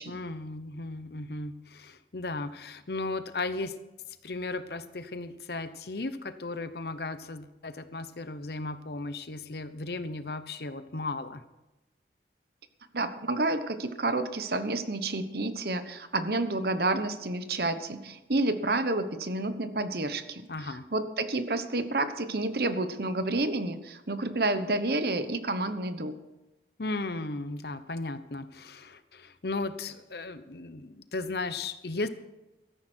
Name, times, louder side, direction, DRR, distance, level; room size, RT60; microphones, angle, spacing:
voice 1, 0.1-3.7 4.2-11.4 20.5-20.8 26.8-32.1, left 2 dB, 65° left, 12 dB, 0.9 m, -36 dB
voice 2, 12.9-26.2, right 2 dB, 60° right, 10 dB, 1.1 m, -30 dB
16.5 x 13.5 x 4.5 m, 1.0 s
head